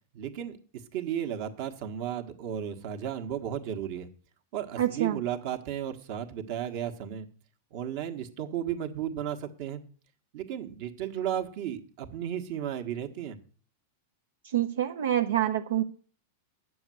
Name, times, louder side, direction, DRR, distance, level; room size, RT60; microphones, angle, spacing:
voice 1, 0.1-0.6 0.9-4.1 4.5-7.3 7.7-9.8 10.3-13.4, right 10 dB, 55° right, 7 dB, 1.4 m, -34 dB
voice 2, 4.8-5.2 14.4-15.8, right 11 dB, 85° right, 6 dB, 0.7 m, -27 dB
9.5 x 7.0 x 7.7 m, 0.42 s
hypercardioid pair, 125°, 0 cm